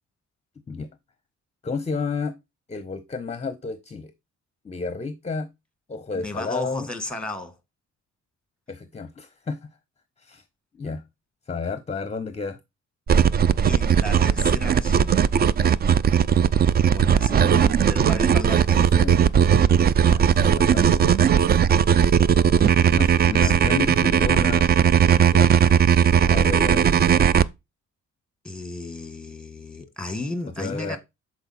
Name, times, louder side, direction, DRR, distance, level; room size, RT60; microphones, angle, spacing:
voice 1, 1.6-2.4 2.7-4.1 4.6-5.5 5.9-6.9 8.7-9.7 10.2-10.4 10.7-11.0 11.5-12.6 18.8-19.2 20.0-21.1 22.9-24.7 25.1-27.2 30.4-31.0, left 4 dB, 20° left, 0.7 m, -31 dB
voice 2, 6.1-7.5 13.6-15.1 16.9-18.8 23.3-23.5 28.4-31.0, left 1 dB, 5° left, 1.4 m, -34 dB
sound 1, 13.1-27.4, right 8 dB, 35° right, 0.4 m, -18 dB
6.9 x 4.4 x 4.1 m
cardioid pair, 90°, 30 cm